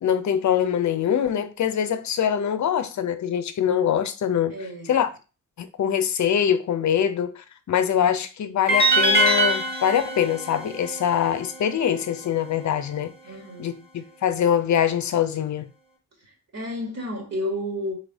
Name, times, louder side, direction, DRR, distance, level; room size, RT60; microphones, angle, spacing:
voice 1, 0.0-4.6 4.9-5.1 5.6-13.1 13.6-15.7, left 9 dB, 60° left, 0.6 m, -23 dB
voice 2, 4.5-5.0 13.2-13.7 16.5-17.9, left 1 dB, 50° right, 2.2 m, -31 dB
sound 1, 8.7-11.8, right 1 dB, 30° right, 1.6 m, -23 dB
4.1 x 3.2 x 4.0 m
cardioid pair, 85°, 33 cm